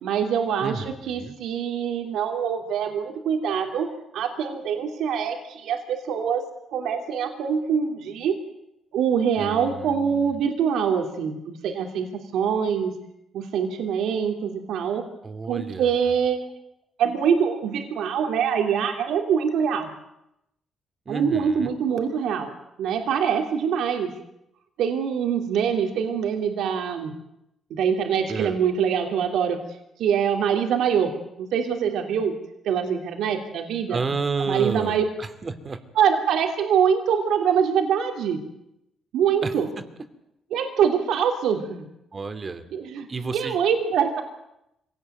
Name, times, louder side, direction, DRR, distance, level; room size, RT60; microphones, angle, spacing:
voice 1, 0.0-6.4 6.7-8.4 8.9-12.9 13.3-15.1 15.5-16.5 17.0-19.9 21.1-22.5 22.8-24.1 24.8-27.1 27.7-29.6 30.0-31.1 31.4-32.3 32.6-34.0 34.5-35.0 35.9-38.4 39.1-39.7 40.5-41.9 42.7-43.1 43.3-44.2, right 7 dB, 80° right, 5 dB, 3.1 m, -24 dB
voice 2, 0.6-1.3 9.4-10.4 15.2-16.0 21.1-21.7 28.3-28.6 33.9-35.8 39.4-39.5 42.1-42.6 43.1-43.6, right 4 dB, 35° right, 9 dB, 2.8 m, -31 dB
24.5 x 18.0 x 9.3 m, 0.84 s
cardioid pair, 90°, 0 cm